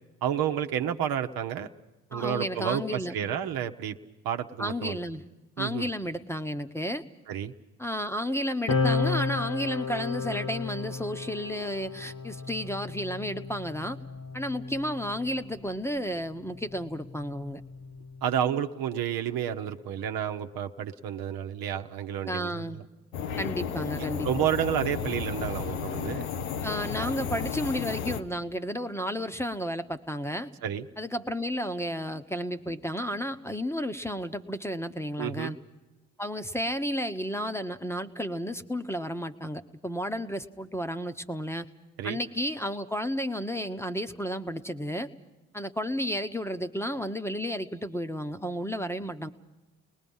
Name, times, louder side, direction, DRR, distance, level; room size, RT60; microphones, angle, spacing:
voice 1, 0.2-1.7 2.1-4.0 4.2-5.0 5.6-5.9 7.3-7.5 18.2-22.8 24.0-26.3 30.6-30.9 35.2-35.5 42.0-42.2, right 9 dB, 60° right, 7 dB, 1.1 m, -30 dB
voice 2, 2.1-3.2 4.6-5.2 5.6-7.0 7.8-14.0 14.3-17.6 22.2-22.8 23.4-24.3 26.6-30.5 31.0-35.6 36.2-41.7 42.0-45.1 45.5-49.3, equal, 5° left, 10 dB, 1.1 m, -32 dB
sound 1, 8.7-15.6 16.6-18.4, left 4 dB, 50° left, 1.6 m, -33 dB
sound 2, 23.1-28.2, left 7 dB, 85° left, 0.9 m, -33 dB
30.0 x 20.5 x 5.6 m, 1.1 s
hypercardioid pair, 45°, 40 cm